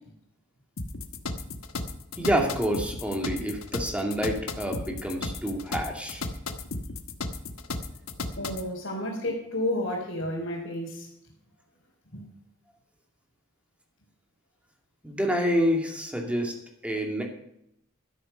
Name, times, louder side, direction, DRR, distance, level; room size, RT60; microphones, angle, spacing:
sound 1, 0.8-8.7, left 3 dB, 80° left, 1.2 m, -34 dB
voice 1, 2.2-6.2 15.0-16.5 16.8-17.2, equal, 5° right, 1 dB, 2.4 m, -28 dB
voice 2, 8.4-11.1 12.1-12.2, left 1 dB, 60° left, -5 dB, 3.5 m, -31 dB
13.0 x 10.0 x 5.5 m, 0.76 s
head